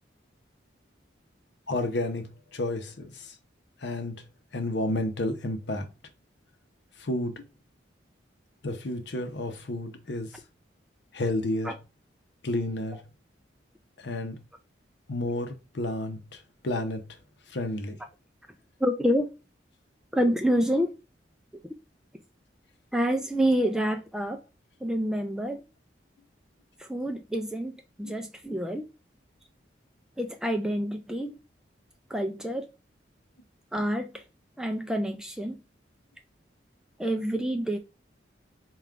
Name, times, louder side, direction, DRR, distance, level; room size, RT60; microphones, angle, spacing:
voice 1, 1.7-3.3 3.8-4.2 4.5-5.9 7.0-7.5 8.6-10.4 11.1-11.7 12.4-13.0 14.0-14.4 15.1-17.1 17.5-18.0 28.0-28.2, left 1 dB, 70° left, 0.7 m, -31 dB
voice 2, 18.8-19.3 20.1-20.9 22.9-24.4 24.8-25.6 26.8-27.7 28.0-28.9 30.2-31.4 32.1-32.7 33.7-34.2 34.6-35.6 37.0-37.8, equal, 5° right, 0.3 m, -27 dB
3.6 x 2.4 x 4.4 m
head